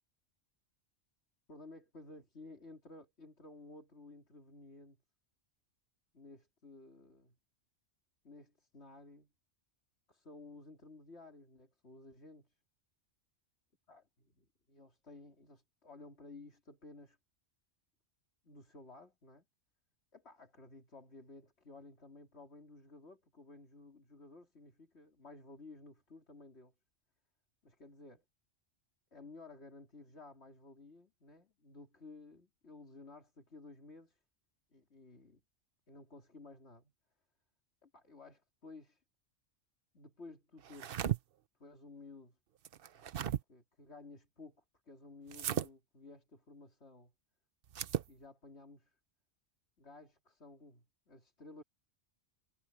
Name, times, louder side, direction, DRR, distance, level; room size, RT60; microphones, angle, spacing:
voice 1, 1.5-5.0 6.1-7.4 8.2-9.3 10.1-12.5 13.9-14.0 14.3-17.2 18.4-19.4 20.1-26.7 27.6-28.2 29.1-34.2 34.7-35.4 35.9-36.9 37.8-39.0 39.9-41.1 41.6-42.4 43.0-43.2 43.5-47.1 48.1-49.0 49.8-51.6, left 3 dB, 70° left, 3.5 m, -55 dB
sound 1, 40.6-41.2 42.7-43.4 45.3-45.7 47.7-48.1, right 10 dB, 60° right, 0.8 m, -35 dB
omnidirectional pair, 1.2 m